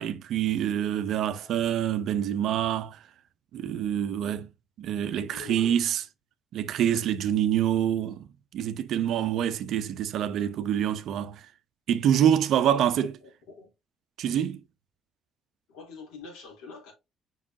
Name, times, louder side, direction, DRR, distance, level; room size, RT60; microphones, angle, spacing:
voice 1, 0.0-3.0 3.5-4.5 4.8-6.0 6.5-8.3 8.5-11.5 11.9-13.1 14.2-14.6, right 10 dB, 60° right, 0.8 m, -26 dB
voice 2, 1.1-1.7 5.1-5.8 12.5-13.3 13.6-13.7 15.7-16.9, left 4 dB, 75° left, 3.8 m, -45 dB
7.3 x 5.7 x 2.9 m
hypercardioid pair, 50°, 0 cm